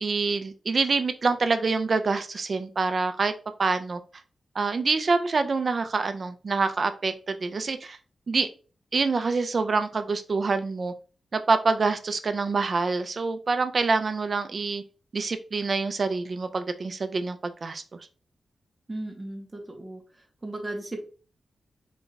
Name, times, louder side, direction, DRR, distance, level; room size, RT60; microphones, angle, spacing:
voice 1, 0.0-3.3 3.6-4.0 4.6-8.0 8.3-8.5 8.9-10.9 11.3-14.8 15.1-17.8, right 4 dB, 40° right, 10 dB, 0.4 m, -26 dB
voice 2, 18.9-20.0 20.4-21.0, right 1 dB, 15° right, 2 dB, 0.7 m, -35 dB
4.0 x 2.3 x 3.8 m, 0.37 s
wide cardioid pair, 170°, 0 cm